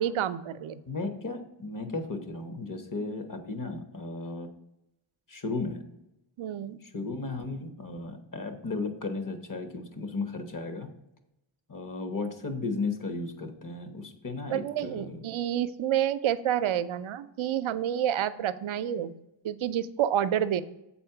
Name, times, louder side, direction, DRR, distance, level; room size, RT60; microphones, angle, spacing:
voice 1, 0.0-0.8 6.4-6.8 14.5-19.1 19.4-20.6, right 10 dB, 70° right, 14 dB, 0.6 m, -29 dB
voice 2, 0.9-4.5 5.3-5.8 6.8-10.9 11.7-15.2, left 3 dB, 40° left, 8 dB, 1.1 m, -35 dB
7.2 x 4.3 x 5.8 m, 0.86 s
wide cardioid pair, 80°, 50 cm